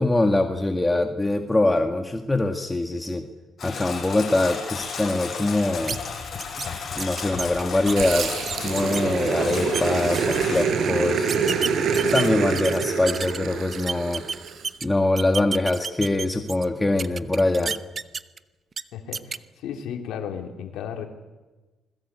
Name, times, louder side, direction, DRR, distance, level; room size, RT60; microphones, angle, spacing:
voice 1, 0.0-3.2 3.6-6.0 7.0-8.3 8.6-11.3 12.1-14.2 14.8-17.8, left 2 dB, 15° left, 4 dB, 1.9 m, -23 dB
Engine, 3.6-10.6, left 6 dB, 50° left, 6.8 m, -34 dB
sound 1, 5.9-6.0 6.4-6.7 7.0-9.0 9.4-9.8 10.1-10.6 11.3-13.4 13.7-14.9 15.2-16.6 17.0-18.4 18.7-18.8 19.1-19.4, right 5 dB, 40° right, 0.9 m, -30 dB
Growling, 8.0-14.6, right 6 dB, 70° right, 5.2 m, -26 dB
voice 2, 18.9-21.0, left 8 dB, 85° left, 3 dB, 3.4 m, -34 dB
27.0 x 21.0 x 8.4 m, 1.2 s
cardioid pair, 90°, 0 cm